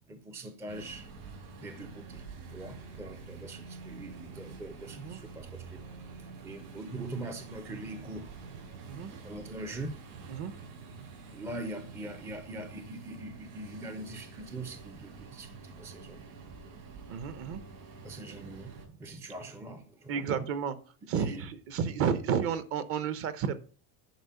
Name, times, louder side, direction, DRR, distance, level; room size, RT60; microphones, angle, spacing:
voice 1, 0.1-1.1 1.6-2.2 2.5-5.8 6.1-8.3 9.2-10.0 11.3-16.8 18.0-20.4 21.1-21.5, right 2 dB, 5° right, 0.5 m, -42 dB
sound 1, 0.7-18.9, right 4 dB, 85° right, 6.0 m, -47 dB
voice 2, 17.1-17.6 20.1-20.7 21.1-23.6, right 7 dB, 35° right, 0.8 m, -31 dB
10.5 x 5.0 x 6.8 m
cardioid pair, 180°, 42 cm